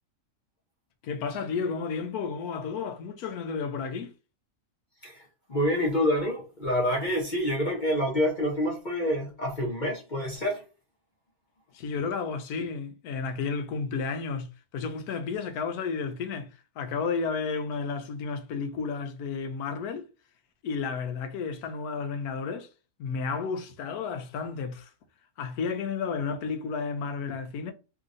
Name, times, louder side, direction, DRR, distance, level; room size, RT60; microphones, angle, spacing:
voice 1, 1.0-4.1 11.7-16.5 16.8-20.1 20.6-22.7 23.0-24.9 25.4-27.7, left 5 dB, 80° left, 1.1 m, -32 dB
voice 2, 5.0-10.6, equal, 40° left, 0.8 m, -27 dB
3.0 x 2.7 x 2.5 m
omnidirectional pair, 1.6 m